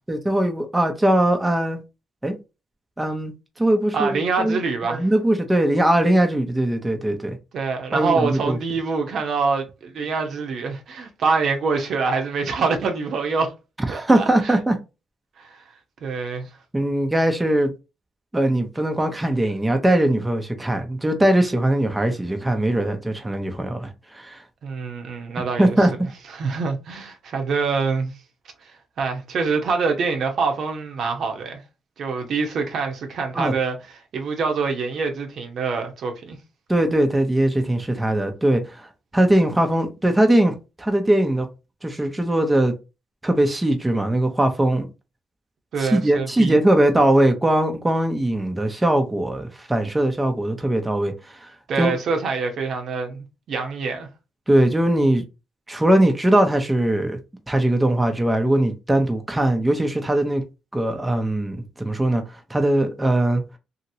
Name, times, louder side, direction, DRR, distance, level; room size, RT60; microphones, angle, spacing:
voice 1, 0.1-1.8 2.2-2.3 3.0-4.6 4.9-7.4 7.9-8.6 13.9-14.7 16.7-17.7 18.3-24.4 25.6-25.9 33.3-33.5 36.7-38.9 39.1-41.5 41.8-42.7 43.2-44.8 45.8-51.5 51.8-51.9 54.5-55.2 55.7-57.2 57.5-60.4 60.7-62.2 62.5-63.4, right 1 dB, 15° right, 0.6 m, -20 dB
voice 2, 3.9-5.1 7.5-13.5 13.9-14.6 15.4-15.6 16.0-16.5 24.6-25.9 26.3-28.1 28.6-31.6 32.0-36.4 45.7-46.6 46.9-47.0 51.7-54.1, right 4 dB, 65° right, 0.8 m, -25 dB
2.9 x 2.8 x 2.7 m
cardioid pair, 90°, 0 cm